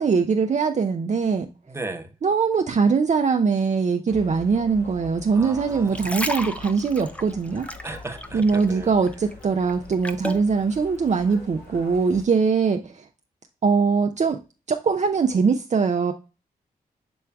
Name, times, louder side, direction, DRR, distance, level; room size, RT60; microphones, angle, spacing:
voice 1, 0.0-1.5 2.2-7.7 8.3-13.1 13.6-14.4 14.7-16.1, right 5 dB, 45° right, 0.5 m, -22 dB
voice 2, 1.6-2.1 5.3-6.2 7.8-8.9, right 2 dB, 15° right, 1.0 m, -35 dB
sound 1, 4.1-12.2, left 2 dB, 75° left, 2.4 m, -44 dB
sound 2, 5.7-8.8 9.1-10.5 11.1-11.2, equal, 10° left, 0.6 m, -32 dB
6.9 x 3.2 x 2.3 m
supercardioid pair, 40°, 16 cm